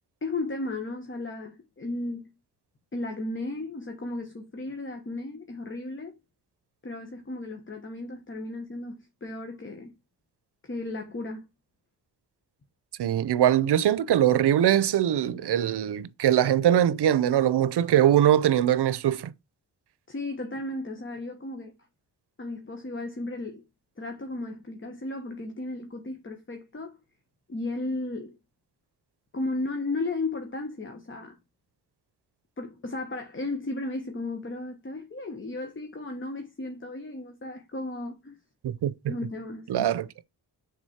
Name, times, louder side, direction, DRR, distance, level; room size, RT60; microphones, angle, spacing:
voice 1, 0.2-2.3 2.9-6.1 6.8-9.9 10.6-11.4 20.1-21.7 22.4-23.6 24.0-27.0 27.5-28.4 29.3-31.4 32.6-38.4 39.1-39.9, left 2 dB, 30° left, 1.2 m, -34 dB
voice 2, 13.0-19.3 38.6-39.1 39.7-40.1, right 11 dB, 75° right, 0.7 m, -22 dB
6.1 x 4.0 x 4.3 m
cardioid pair, 75°, 40 cm